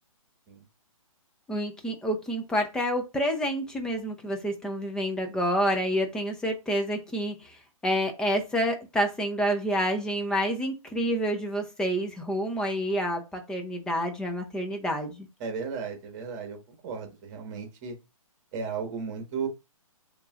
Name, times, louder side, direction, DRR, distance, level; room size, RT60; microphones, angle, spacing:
voice 1, 1.5-7.6 7.8-15.3, equal, 5° left, 4 dB, 0.6 m, -28 dB
voice 2, 15.4-17.9 18.5-19.5, right 5 dB, 30° right, 5 dB, 1.4 m, -35 dB
6.8 x 2.9 x 2.5 m, 0.27 s
hypercardioid pair, 145°, 18 cm